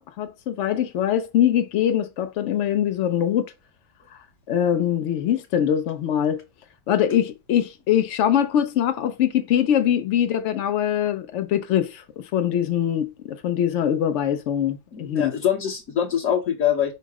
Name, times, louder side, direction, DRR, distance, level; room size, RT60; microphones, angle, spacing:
voice 1, 0.2-3.5 4.5-6.4 6.9-15.4, left 10 dB, 90° left, 0.6 m, -23 dB
voice 2, 14.9-16.9, left 9 dB, 55° left, 1.0 m, -24 dB
5.5 x 2.0 x 4.6 m
omnidirectional pair, 1.8 m